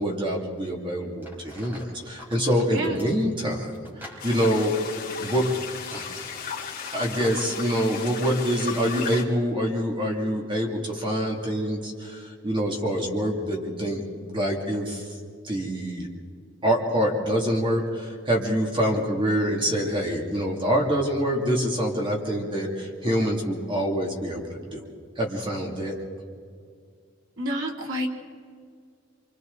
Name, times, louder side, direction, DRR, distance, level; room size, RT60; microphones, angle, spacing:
voice 1, 0.0-4.8 5.2-5.5 5.9-6.3 6.9-15.1 15.4-16.1 16.6-24.9 25.2-26.0, equal, 25° right, -1 dB, 2.7 m, -26 dB
sound 1, 1.2-7.7 8.0-8.2, left 1 dB, 10° right, 4.2 m, -46 dB
sound 2, 4.2-9.2, left 7 dB, 45° left, 2.6 m, -36 dB
voice 2, 27.4-28.1, equal, 90° right, -1 dB, 3.2 m, -29 dB
28.0 x 25.0 x 4.1 m, 2.1 s
head